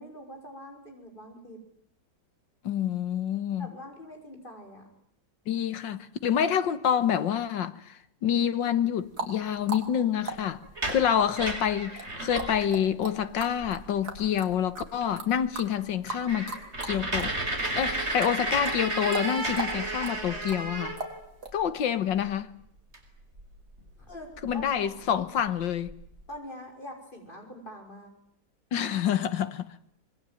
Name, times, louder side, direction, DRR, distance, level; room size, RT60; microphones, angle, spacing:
voice 1, 0.0-1.6 3.6-4.9 24.0-24.3 24.5-25.0 26.3-28.1, left 1 dB, 25° left, 6.2 m, -44 dB
voice 2, 2.6-3.7 5.5-7.8 8.2-10.6 10.9-16.6 16.8-17.3 17.8-21.0 21.5-22.6 24.4-26.0 28.7-29.7, left 9 dB, 85° left, 2.0 m, -27 dB
sound 1, 9.0-17.4 17.6-21.5, right 3 dB, 55° right, 4.0 m, -39 dB
sound 2, 10.6-12.8 13.2-13.3 13.6-14.0 14.5-14.6 15.0-15.1 15.4-15.5 15.9-21.5 22.9-23.1 23.4-24.7 25.3-25.4 25.6-26.2, right 2 dB, 35° right, 5.3 m, -33 dB
25.5 x 21.5 x 9.2 m
omnidirectional pair, 2.0 m